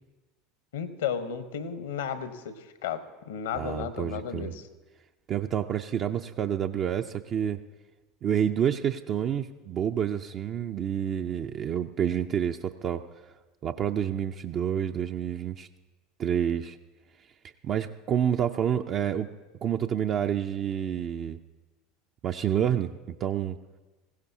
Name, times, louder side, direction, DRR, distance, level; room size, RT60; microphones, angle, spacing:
voice 1, 0.7-3.0 3.3-4.7, left 8 dB, 75° left, 10 dB, 1.2 m, -33 dB
voice 2, 3.5-4.5 5.3-7.6 8.2-13.0 13.6-15.7 16.2-16.8 17.6-19.3 19.6-21.4 22.2-23.6, right 9 dB, 40° right, 5 dB, 0.5 m, -28 dB
20.5 x 16.0 x 2.8 m, 1.2 s
figure-of-eight pair, 75°, 0 cm